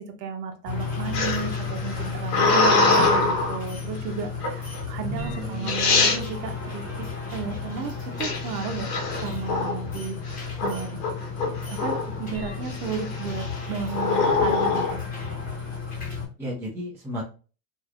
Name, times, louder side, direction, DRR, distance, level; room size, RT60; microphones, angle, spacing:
voice 1, 0.0-11.0 11.7-15.0, right 6 dB, 80° right, 6 dB, 0.8 m, -33 dB
sound 1, 0.7-16.3, left 5 dB, 15° left, 1.1 m, -33 dB
sound 2, 1.1-3.6 4.4-4.8 5.4-5.5 5.7-6.2 8.2-9.9 10.3-10.7 11.0-12.2 12.7-13.1 13.9-15.0, left 3 dB, 80° left, 1.1 m, -23 dB
voice 2, 5.0-5.7 16.4-17.2, right 1 dB, 5° right, -7 dB, 0.8 m, -34 dB
3.1 x 2.5 x 2.3 m, 0.37 s
supercardioid pair, 130°, 48 cm